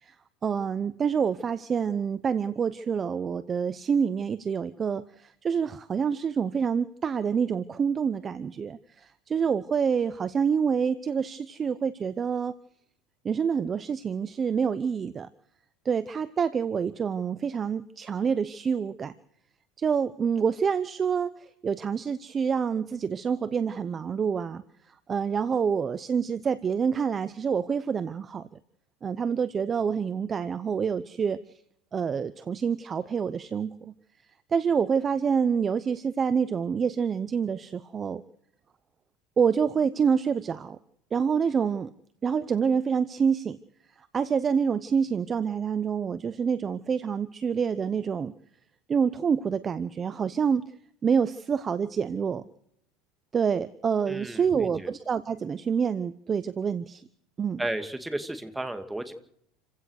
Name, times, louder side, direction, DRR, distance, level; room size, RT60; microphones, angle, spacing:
voice 1, 0.4-12.5 13.2-15.3 15.8-19.1 19.8-24.6 25.1-28.5 29.0-31.4 31.9-33.9 34.5-38.2 39.4-40.8 41.1-41.9 42.2-43.6 44.1-48.3 48.9-50.6 51.0-52.4 53.3-57.0 57.4-57.6, right 6 dB, 20° right, 14 dB, 0.8 m, -27 dB
voice 2, 54.1-54.9 57.6-59.1, right 1 dB, 5° right, 8 dB, 2.3 m, -33 dB
28.5 x 16.0 x 6.5 m, 0.71 s
cardioid pair, 155°, 0 cm